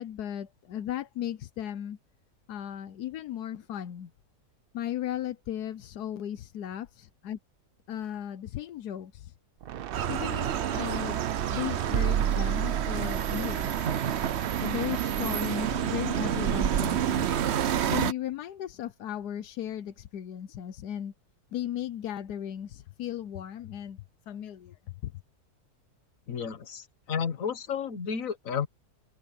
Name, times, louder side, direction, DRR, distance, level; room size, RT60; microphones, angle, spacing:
voice 1, 0.0-2.0 2.5-4.1 4.7-7.4 7.9-9.3 10.1-11.2 11.5-13.9 14.6-17.3 17.9-21.1 21.5-25.1, left 11 dB, 85° left, 1.3 m, -36 dB
sound 1, 9.6-14.9, right 10 dB, 75° right, 0.5 m, -33 dB
sound 2, 9.9-18.1, right 9 dB, 55° right, 0.8 m, -29 dB
voice 2, 26.3-28.7, left 7 dB, 60° left, 1.7 m, -32 dB
omnidirectional pair, 1.6 m